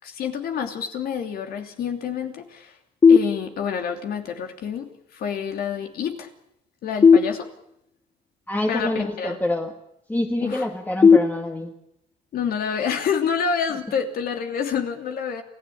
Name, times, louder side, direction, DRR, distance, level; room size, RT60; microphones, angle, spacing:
voice 1, 0.0-2.8 3.1-6.3 6.8-7.5 8.7-9.4 10.4-10.7 12.3-15.4, left 7 dB, 60° left, 5 dB, 3.0 m, -28 dB
sound 1, 3.0-4.0 7.0-8.0 11.0-12.0, left 5 dB, 25° left, 1.1 m, -17 dB
voice 2, 8.5-9.7 10.1-11.7, left 1 dB, 10° left, 3 dB, 2.1 m, -26 dB
28.0 x 16.0 x 8.7 m, 0.80 s
cardioid pair, 110°, 17 cm